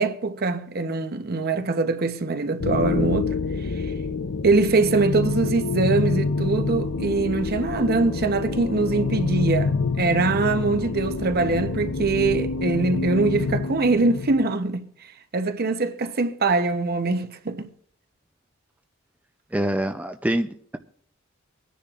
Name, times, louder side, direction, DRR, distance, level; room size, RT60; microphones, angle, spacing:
voice 1, 0.0-3.3 4.4-14.9 15.3-17.7, right 3 dB, 50° right, 0.8 m, -23 dB
sound 1, 2.6-14.6, left 4 dB, 75° left, 0.6 m, -27 dB
voice 2, 19.5-20.8, right 1 dB, 5° right, 0.5 m, -25 dB
25.0 x 10.0 x 2.5 m
head